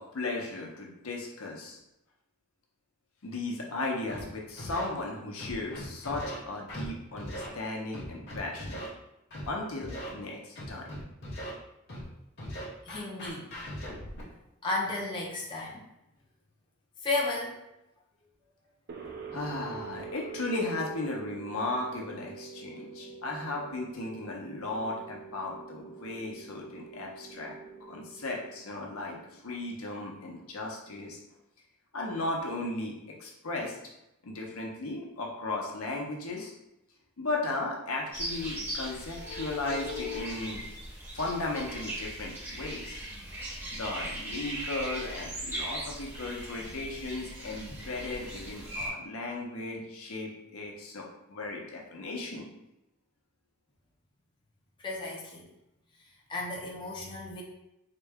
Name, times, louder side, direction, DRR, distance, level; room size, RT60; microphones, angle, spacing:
voice 1, 0.0-1.8 3.2-8.8 9.5-11.0 19.3-27.5 27.9-31.2 31.9-33.8 34.2-36.5 37.2-40.6 41.1-43.0 43.7-52.5, left 2 dB, 80° left, -1 dB, 0.7 m, -36 dB
Scratching (performance technique), 4.1-4.2 4.6-4.8 5.4-6.4 6.7-6.9 7.2-7.5 7.9-8.9 9.3-9.5 9.8-10.1 10.6-11.5 11.9-12.0 12.4-14.2, equal, 50° left, 0.9 m, -39 dB
voice 2, 12.8-13.5 14.6-15.8 17.0-17.6 54.8-55.5 56.3-57.4, left 2 dB, 20° left, -3 dB, 0.5 m, -33 dB
sound 1, 18.9-29.8, right 6 dB, 45° right, 0.4 m, -45 dB
sound 2, 38.1-48.9, right 1 dB, 10° right, 0.7 m, -39 dB
3.8 x 2.2 x 3.5 m, 0.89 s
head